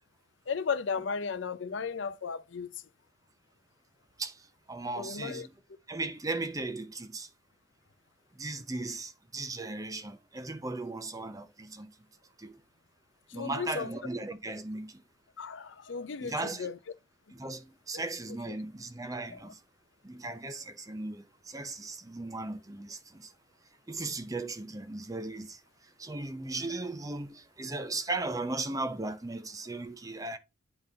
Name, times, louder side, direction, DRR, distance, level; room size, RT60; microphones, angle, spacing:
voice 1, 0.5-2.7 5.0-5.5 13.3-13.9 15.4-16.8 19.3-19.4, left 5 dB, 75° left, 0.6 m, -35 dB
voice 2, 4.2-5.5 5.9-7.3 8.3-11.9 12.4-12.6 13.3-15.0 16.2-16.7 17.3-19.6 20.0-23.3 23.9-30.4, right 2 dB, 15° right, 0.6 m, -37 dB
9.0 x 3.7 x 3.8 m
head